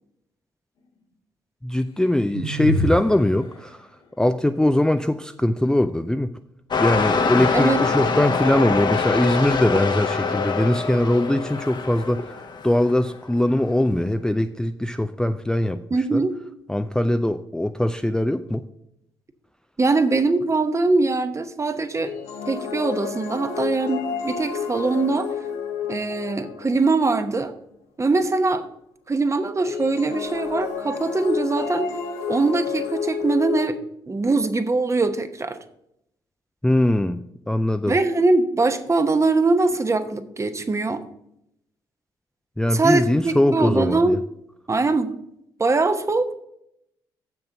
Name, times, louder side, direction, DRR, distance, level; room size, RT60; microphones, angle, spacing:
voice 1, 1.6-3.9 4.2-6.3 6.8-12.3 12.6-15.8 16.1-16.2 16.7-18.6 36.6-37.9 42.6-44.2, left 1 dB, 5° left, 8 dB, 0.4 m, -21 dB
sound 1, 2.3-3.2, equal, 65° left, 1.8 m, -24 dB
sound 2, 6.7-13.1 13.8-13.9, left 4 dB, 45° left, 1.0 m, -24 dB
voice 2, 7.5-7.8 15.9-16.3 19.8-22.1 22.5-25.3 25.9-27.5 28.0-28.7 29.1-31.9 32.3-33.8 34.1-35.6 37.9-41.0 42.7-44.2 44.7-45.2 45.6-46.4, right 3 dB, 30° right, 9 dB, 0.9 m, -22 dB
sound 3, 22.0-27.1 29.6-33.7, left 7 dB, 80° left, 0.8 m, -30 dB
7.1 x 6.2 x 6.3 m, 0.78 s
hypercardioid pair, 50°, 11 cm